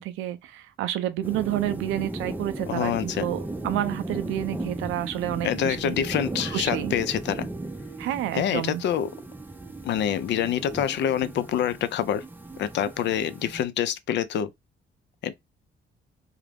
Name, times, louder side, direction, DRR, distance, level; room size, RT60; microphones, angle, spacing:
voice 1, 0.0-5.9 6.5-6.9 8.0-8.8, right 13 dB, 90° right, 0.4 m, -29 dB
sound 1, 1.2-13.6, right 2 dB, 10° right, 0.4 m, -36 dB
voice 2, 2.7-3.3 5.4-7.5 8.3-9.1 9.8-12.2 12.6-14.5 15.2-15.3, left 9 dB, 65° left, 0.4 m, -26 dB
2.3 x 2.0 x 3.2 m
cardioid pair, 90°, 20 cm